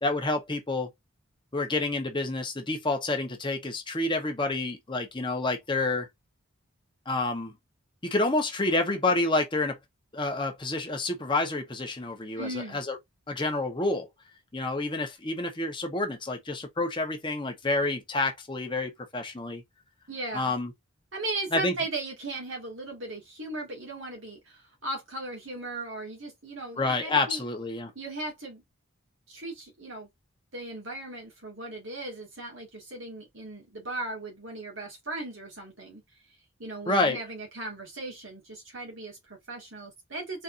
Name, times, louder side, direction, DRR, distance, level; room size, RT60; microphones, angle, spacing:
voice 1, 0.0-0.9 1.5-6.1 7.1-7.5 8.0-9.8 10.1-13.0 13.3-14.1 14.5-19.6 20.3-20.7 21.5-21.8 26.8-27.9 36.9-37.2, left 2 dB, 20° left, 1.0 m, -28 dB
voice 2, 12.4-12.8 20.1-20.5 21.1-27.4 28.0-28.6 29.3-30.1 30.5-36.0 36.6-40.4, right 2 dB, 55° right, 2.0 m, -37 dB
4.3 x 4.1 x 2.6 m
head